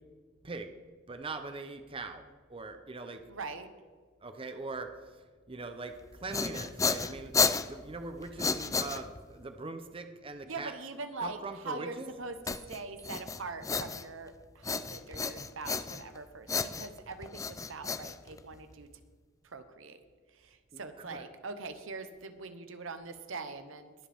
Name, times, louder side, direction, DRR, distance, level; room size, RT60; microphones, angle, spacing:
voice 1, 1.1-2.2 2.5-3.2 4.2-7.3 7.7-10.8 11.2-12.1 20.7-21.2, right 3 dB, 25° right, 7 dB, 0.7 m, -41 dB
voice 2, 3.3-3.7 10.5-11.4 11.6-18.9 19.4-20.0 20.4-23.9, right 3 dB, 75° right, 9 dB, 0.9 m, -42 dB
sound 1, 6.0-9.4 12.5-14.3 14.6-16.2 16.5-18.7, left 5 dB, 15° left, 0.4 m, -32 dB
21.5 x 7.7 x 3.5 m, 1.5 s
head